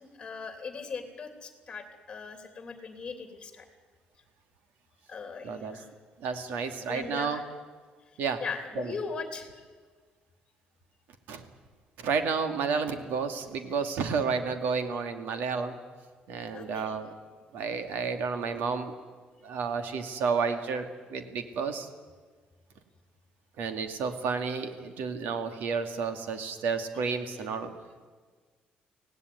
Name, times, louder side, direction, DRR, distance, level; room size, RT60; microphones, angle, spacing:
voice 1, 0.0-3.7 5.1-5.9 6.9-7.4 8.4-9.6 16.5-16.9 26.9-27.2, left 5 dB, 25° left, 6 dB, 3.2 m, -39 dB
voice 2, 5.4-5.8 6.2-7.4 8.2-8.4 8.8-8.9 11.3-11.4 12.0-15.8 16.3-17.1 17.5-18.9 19.4-21.9 23.6-27.7, right 5 dB, 80° right, 7 dB, 2.4 m, -31 dB
24.5 x 17.5 x 9.6 m, 1.5 s
cardioid pair, 155°, 3 cm